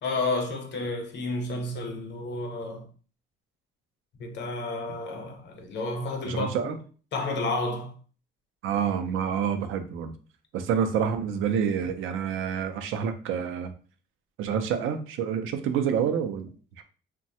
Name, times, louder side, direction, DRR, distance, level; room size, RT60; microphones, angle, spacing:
voice 1, 0.0-2.8 4.2-6.7 7.1-8.0, left 2 dB, 65° left, 0.8 m, -31 dB
voice 2, 6.2-6.8 8.6-10.1 10.5-13.7 14.4-16.5 16.8-16.9, right 7 dB, 85° right, 0.4 m, -28 dB
3.1 x 2.2 x 2.7 m
cardioid pair, 90°, 20 cm